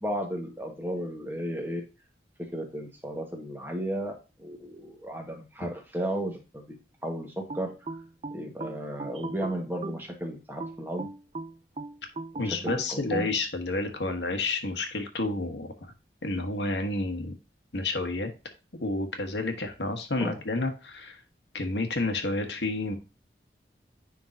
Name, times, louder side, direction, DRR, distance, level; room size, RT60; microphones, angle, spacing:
voice 1, 0.0-1.8 2.5-6.7 7.0-7.7 8.3-11.1 12.3-13.3 20.2-20.4, right 1 dB, 10° right, 2 dB, 1.4 m, -34 dB
sound 1, 7.5-10.1 10.6-13.3, right 2 dB, 35° right, 0.5 m, -38 dB
voice 2, 12.4-15.7 16.2-17.3 17.7-18.3 18.8-21.2 21.5-23.0, left 2 dB, 80° left, 5 dB, 1.3 m, -30 dB
9.8 x 3.8 x 2.7 m, 0.29 s
head